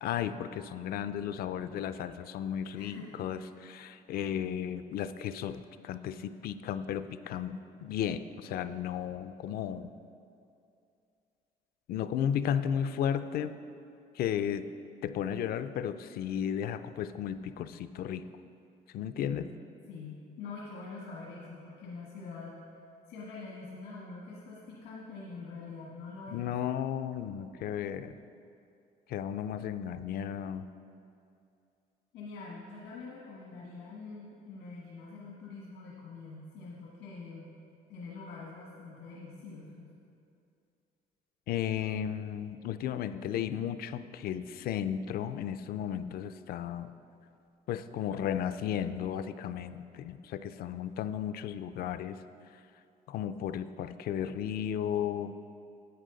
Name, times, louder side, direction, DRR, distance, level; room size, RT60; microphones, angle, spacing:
voice 1, 0.0-9.9 11.9-13.6 14.1-14.7 15.0-18.2 18.9-19.5 26.3-28.2 29.1-30.7 41.5-46.9 47.7-52.2 53.1-55.4, left 9 dB, 65° left, 12 dB, 0.5 m, -34 dB
voice 2, 2.7-3.2 19.2-19.5 19.9-22.6 23.1-26.5 32.1-37.5 37.9-39.9, left 4 dB, 90° left, -4 dB, 1.5 m, -45 dB
11.0 x 8.2 x 3.9 m, 2.6 s
cardioid pair, 110°, 17 cm